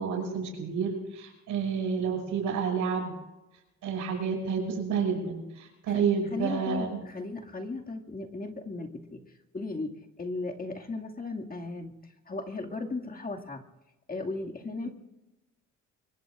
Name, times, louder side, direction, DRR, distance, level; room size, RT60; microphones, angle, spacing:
voice 1, 0.0-3.1 3.8-7.0, right 6 dB, 85° right, 1 dB, 6.0 m, -30 dB
voice 2, 6.3-9.2 9.5-13.6 14.1-14.9, left 3 dB, 30° left, 2 dB, 2.1 m, -36 dB
25.0 x 21.5 x 2.5 m, 1.0 s
cardioid pair, 90°, 30 cm